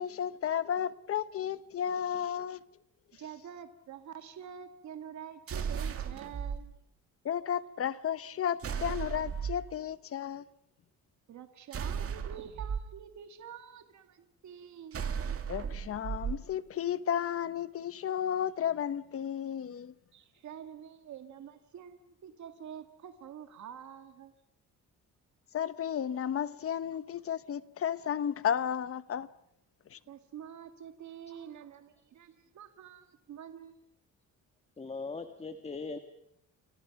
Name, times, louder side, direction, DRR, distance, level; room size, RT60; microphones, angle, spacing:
voice 1, 0.0-2.6 7.2-10.4 15.5-19.9 25.5-29.3 29.9-30.0, left 9 dB, 45° left, 1.0 m, -33 dB
voice 2, 3.2-6.7 11.3-15.1 20.1-24.3 30.1-33.8, right 8 dB, 60° right, 1.9 m, -47 dB
sound 1, 5.5-6.6 8.6-9.6 11.7-12.8 14.9-16.4, right 7 dB, 45° right, 2.2 m, -35 dB
voice 3, 34.8-36.0, left 4 dB, 20° left, 1.4 m, -39 dB
29.5 x 25.5 x 5.9 m
cardioid pair, 140°, 32 cm